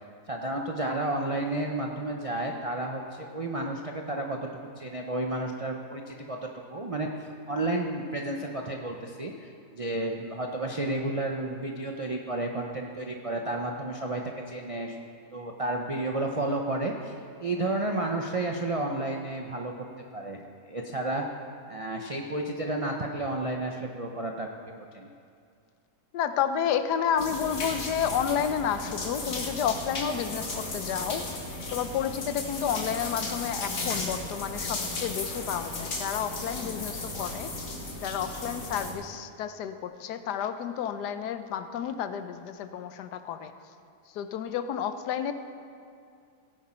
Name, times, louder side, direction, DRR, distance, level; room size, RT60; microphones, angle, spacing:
voice 1, 0.3-15.0 15.3-17.1 17.4-19.7 20.1-20.4 20.7-21.2 21.7-24.5 24.9-25.1, right 2 dB, 50° right, 1 dB, 0.4 m, -31 dB
voice 2, 26.1-31.2 31.7-37.5 38.0-43.5 44.1-45.3, left 8 dB, 90° left, 10 dB, 1.3 m, -30 dB
sound 1, 27.2-38.9, left 2 dB, 55° left, 1.9 m, -35 dB
16.5 x 9.8 x 4.4 m, 2.4 s
omnidirectional pair, 1.7 m